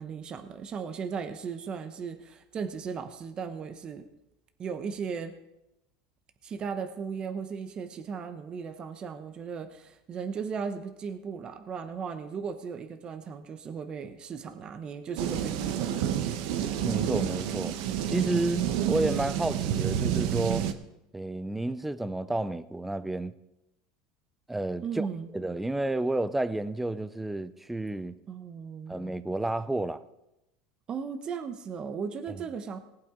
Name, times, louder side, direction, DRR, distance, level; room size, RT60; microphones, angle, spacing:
voice 1, 0.0-4.1 4.6-5.3 6.4-16.4 24.8-25.3 28.3-29.0 30.9-32.8, right 6 dB, 30° right, 1.0 m, -36 dB
sound 1, 15.2-20.7, right 10 dB, 70° right, 1.0 m, -29 dB
voice 2, 16.8-17.7 18.1-20.7 21.1-23.3 24.5-25.1 25.3-28.2 28.9-30.0, right 2 dB, 5° right, 0.5 m, -31 dB
18.5 x 8.7 x 3.8 m
supercardioid pair, 125°, 3 cm